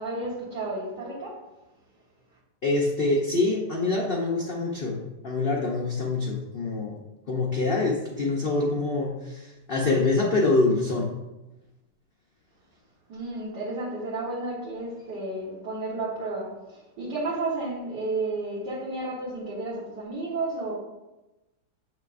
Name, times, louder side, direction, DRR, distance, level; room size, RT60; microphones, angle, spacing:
voice 1, 0.0-1.4 13.1-20.7, right 2 dB, 65° right, -8 dB, 2.0 m, -32 dB
voice 2, 2.6-7.0 7.3-11.1, left 3 dB, 50° left, -2 dB, 0.6 m, -25 dB
7.7 x 6.4 x 2.6 m, 1.0 s
omnidirectional pair, 2.1 m